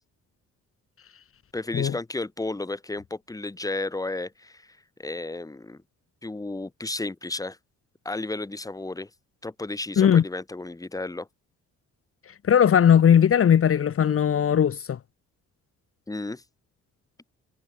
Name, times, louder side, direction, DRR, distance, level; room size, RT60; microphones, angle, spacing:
voice 1, 1.5-5.8 6.2-7.6 8.0-9.1 9.4-11.3 16.1-16.4, left 2 dB, 10° left, 1.8 m, -33 dB
voice 2, 12.4-15.0, left 8 dB, 45° left, 1.3 m, -18 dB
cardioid pair, 90°, 30 cm